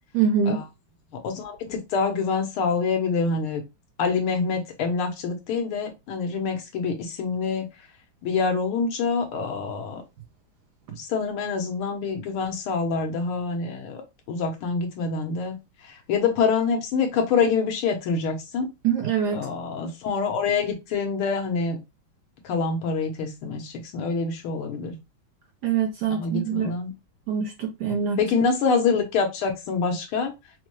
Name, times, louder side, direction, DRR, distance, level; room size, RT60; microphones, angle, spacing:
voice 1, 0.1-0.6 18.8-19.5 25.6-26.7 27.3-28.2, right 7 dB, 65° right, 1.1 m, -24 dB
voice 2, 1.2-3.6 4.0-7.7 8.2-10.0 11.0-14.0 14.3-15.6 15.8-18.7 19.3-21.8 22.4-24.9 26.1-26.9 28.2-30.3, left 5 dB, 80° left, 1.8 m, -26 dB
4.7 x 2.2 x 3.1 m
omnidirectional pair, 2.4 m